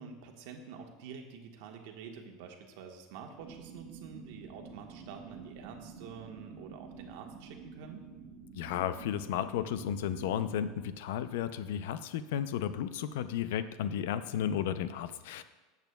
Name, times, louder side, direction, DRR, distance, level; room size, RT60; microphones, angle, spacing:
voice 1, 0.0-8.1, right 6 dB, 70° right, 3 dB, 1.3 m, -47 dB
sound 1, 3.4-10.8, right 5 dB, 85° right, 1.0 m, -49 dB
voice 2, 8.6-15.4, left 9 dB, 80° left, 13 dB, 0.5 m, -33 dB
13.5 x 8.1 x 2.3 m, 1.2 s
supercardioid pair, 155°, 0 cm